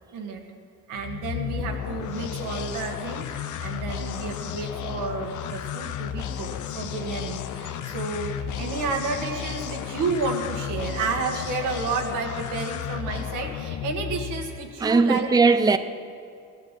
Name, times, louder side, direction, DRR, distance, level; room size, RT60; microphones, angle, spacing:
voice 1, 0.1-0.4 0.9-15.3, right 4 dB, 90° right, 2.0 m, -31 dB
sound 1, 0.9-14.7, left 9 dB, 75° left, 0.8 m, -33 dB
voice 2, 14.8-15.8, right 4 dB, 15° right, 0.6 m, -19 dB
16.5 x 10.5 x 7.6 m
cardioid pair, 90°, 30 cm